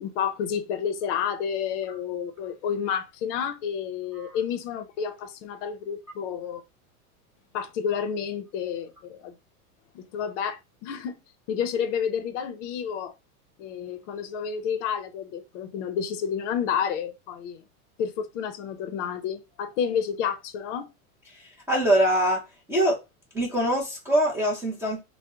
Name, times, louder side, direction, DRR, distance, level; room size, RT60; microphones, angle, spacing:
voice 1, 0.0-6.6 7.5-9.4 9.9-11.2 11.5-13.1 13.6-17.6 18.0-20.9, left 7 dB, 55° left, 0.6 m, -30 dB
voice 2, 21.7-22.4 22.7-23.0 23.3-25.0, right 1 dB, 5° right, 0.4 m, -23 dB
2.7 x 2.0 x 3.5 m
supercardioid pair, 125°, 45 cm